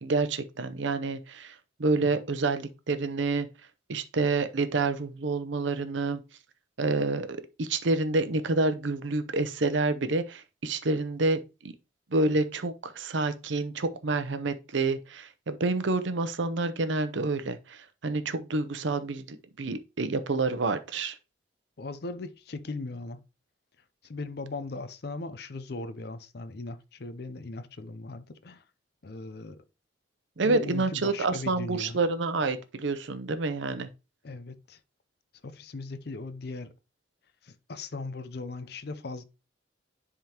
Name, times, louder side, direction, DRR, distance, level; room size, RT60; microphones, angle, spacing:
voice 1, 0.0-3.5 3.9-6.2 6.8-11.7 12.1-21.2 30.4-33.9, right 3 dB, 70° right, 0.7 m, -28 dB
voice 2, 21.8-23.2 24.0-28.6 29.0-29.6 30.4-32.0 34.2-34.8 35.4-36.7 37.4-39.2, left 3 dB, 55° left, 0.5 m, -38 dB
10.5 x 3.6 x 2.9 m
head